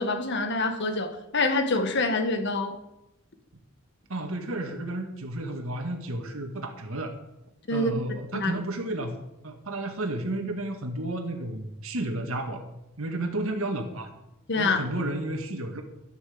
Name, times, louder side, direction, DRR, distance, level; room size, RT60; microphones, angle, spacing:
voice 1, 0.0-2.8 7.7-8.5 14.5-14.8, left 2 dB, 55° left, 1.6 m, -26 dB
voice 2, 4.1-7.2 7.7-9.2 9.4-12.6 13.0-14.1 14.6-15.8, right 1 dB, 90° right, 1.7 m, -32 dB
13.0 x 11.5 x 5.1 m
head